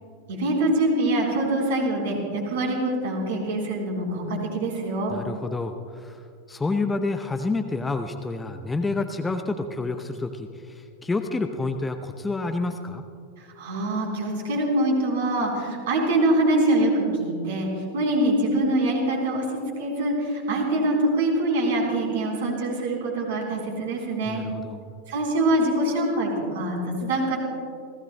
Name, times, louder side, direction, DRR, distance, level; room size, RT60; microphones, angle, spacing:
voice 1, 0.3-5.2 13.4-19.4 19.8-24.4 25.1-27.4, right 1 dB, 55° right, -1 dB, 3.8 m, -24 dB
voice 2, 5.1-6.2 6.5-13.0 24.2-24.8, left 3 dB, 10° left, 6 dB, 0.7 m, -29 dB
29.0 x 16.0 x 2.2 m, 2.3 s
figure-of-eight pair, 90°, 0 cm